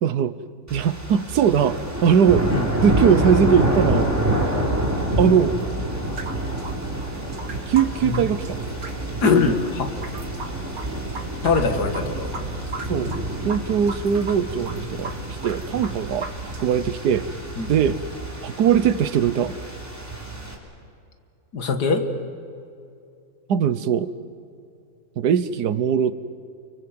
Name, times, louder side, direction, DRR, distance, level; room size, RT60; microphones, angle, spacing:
voice 1, 0.0-0.3 0.7-2.4 2.8-4.1 5.2-5.5 7.7-8.6 12.9-13.1 13.4-16.3 16.6-17.2 17.7-18.0 18.4-19.6 23.5-24.1 25.2-26.1, right 8 dB, 90° right, 14 dB, 1.5 m, -20 dB
sound 1, 0.7-20.5, right 1 dB, 10° right, 3.5 m, -28 dB
sound 2, 6.0-16.8, right 3 dB, 65° right, 2.5 m, -38 dB
voice 2, 9.2-9.9 11.4-12.3 17.6-17.7 21.5-22.1, left 4 dB, 90° left, 6 dB, 2.4 m, -22 dB
29.0 x 23.5 x 7.9 m, 2.6 s
omnidirectional pair, 1.7 m